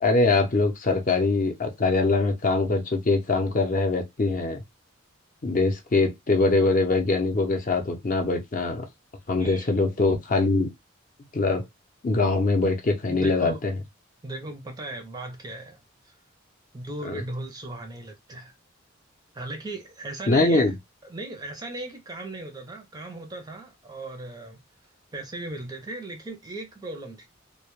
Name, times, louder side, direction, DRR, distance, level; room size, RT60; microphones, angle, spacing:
voice 1, 0.0-4.6 5.4-8.9 9.3-10.7 11.3-11.6 12.0-13.8 17.0-17.2 20.3-20.8, left 3 dB, 40° left, 0.5 m, -23 dB
voice 2, 13.1-13.6 14.2-16.2 16.7-18.5 19.3-20.7 21.1-24.6 25.1-27.3, right 2 dB, 20° right, 0.4 m, -37 dB
2.1 x 2.0 x 2.9 m
head